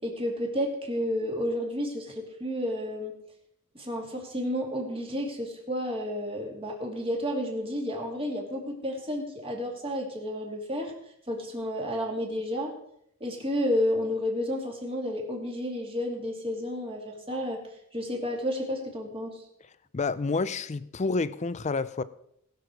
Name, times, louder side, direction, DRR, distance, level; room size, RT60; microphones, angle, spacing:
voice 1, 0.0-3.1 3.7-10.9 11.3-12.7 13.2-17.6 17.9-19.4, equal, 25° right, 2.6 m, -31 dB
voice 2, 19.9-22.0, left 3 dB, 30° left, 0.5 m, -29 dB
20.0 x 6.7 x 4.7 m
head